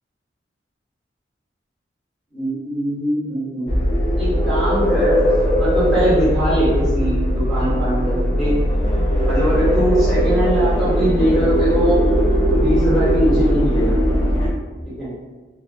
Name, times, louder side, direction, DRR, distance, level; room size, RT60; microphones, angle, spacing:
voice 1, 2.3-3.7 4.2-5.3 5.5-8.5 9.2-12.1 12.5-13.9 14.8-15.1, right 1 dB, ahead, -12 dB, 1.3 m, -21 dB
sound 1, 3.7-14.5, equal, 25° left, 0.5 m, -19 dB
4.3 x 2.2 x 2.3 m, 1.3 s
head